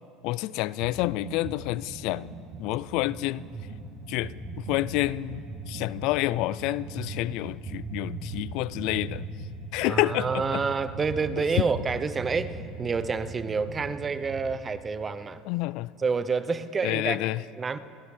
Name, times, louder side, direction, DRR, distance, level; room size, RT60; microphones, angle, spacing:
voice 1, 0.2-2.3 2.6-3.4 4.1-4.3 4.7-5.4 5.7-9.2 9.7-10.6 15.5-15.9 16.8-17.4, left 17 dB, 65° left, 20 dB, 0.3 m, -28 dB
sound 1, 0.8-1.0 1.2-14.5, right 2 dB, 65° right, 2.9 m, -39 dB
voice 2, 9.8-15.4 16.0-17.3 17.6-17.8, right 5 dB, 30° right, 13 dB, 0.7 m, -28 dB
29.0 x 12.0 x 3.3 m, 2.6 s
hypercardioid pair, 80°, 0 cm